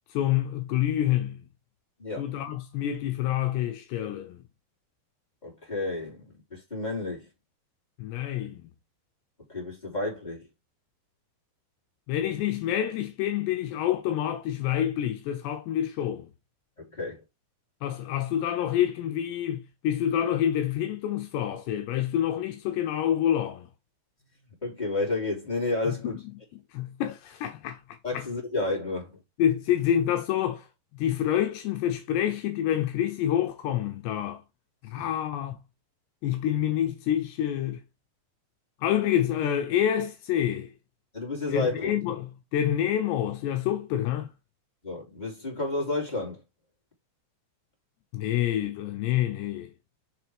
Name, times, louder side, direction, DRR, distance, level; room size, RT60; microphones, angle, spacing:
voice 1, 0.1-1.5 2.2-4.5 8.0-8.7 12.1-16.3 17.8-23.7 26.7-27.8 28.1-28.3 29.4-30.7 30.9-34.4 34.8-35.6 36.2-37.8 38.8-40.7 41.5-44.3 48.1-49.7, left 11 dB, 80° left, 2.9 m, -27 dB
voice 2, 2.0-2.3 5.4-7.3 9.5-10.5 16.8-17.2 24.6-26.1 28.0-29.2 34.9-35.1 41.1-41.9 44.8-46.4, left 2 dB, 10° left, 3.1 m, -31 dB
7.0 x 5.9 x 3.5 m
omnidirectional pair, 5.0 m